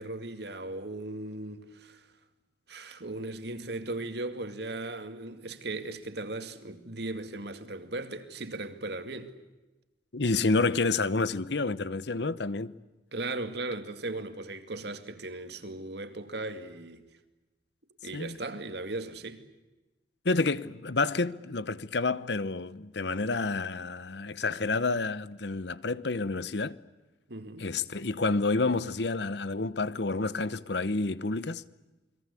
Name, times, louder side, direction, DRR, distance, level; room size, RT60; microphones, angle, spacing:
voice 1, 0.0-2.1 2.7-9.3 13.1-17.1 18.0-19.4 27.3-27.7, right 2 dB, 60° right, 2.3 m, -37 dB
voice 2, 10.1-12.7 18.1-18.4 20.2-26.8 27.6-31.6, left 3 dB, 65° left, 0.9 m, -29 dB
29.5 x 22.0 x 8.4 m
head